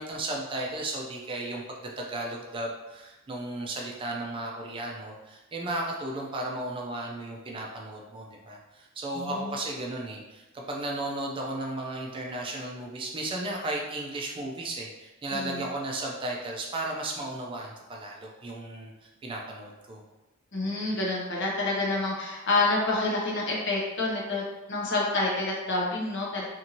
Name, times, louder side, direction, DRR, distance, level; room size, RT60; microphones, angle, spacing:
voice 1, 0.0-18.9 19.2-20.0, right 2 dB, 25° right, -1 dB, 0.4 m, -35 dB
voice 2, 9.1-9.6 15.3-15.6 20.5-26.4, left 2 dB, 60° left, -3 dB, 0.8 m, -28 dB
2.7 x 2.5 x 2.9 m, 1.1 s
head